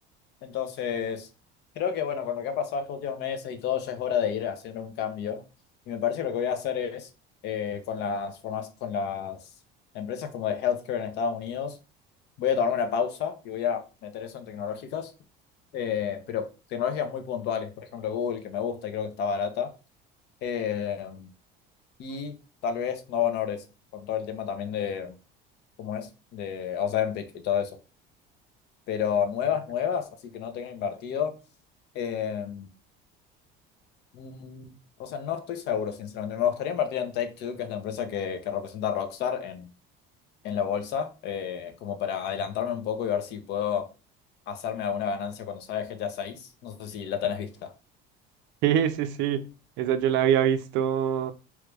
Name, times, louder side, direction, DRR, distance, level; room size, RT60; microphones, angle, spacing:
voice 1, 0.4-1.3 1.8-5.4 5.9-7.1 7.4-9.4 9.9-11.8 12.4-15.1 15.7-19.7 20.4-21.3 22.0-22.3 22.6-23.6 23.9-25.2 25.8-27.7 28.9-31.3 31.9-32.7 34.1-39.7 40.4-43.8 44.5-47.7, left 8 dB, 55° left, 0.6 m, -30 dB
voice 2, 48.6-49.5 49.8-51.3, right 9 dB, 65° right, 0.4 m, -24 dB
3.0 x 2.3 x 3.2 m
cardioid pair, 165°, 21 cm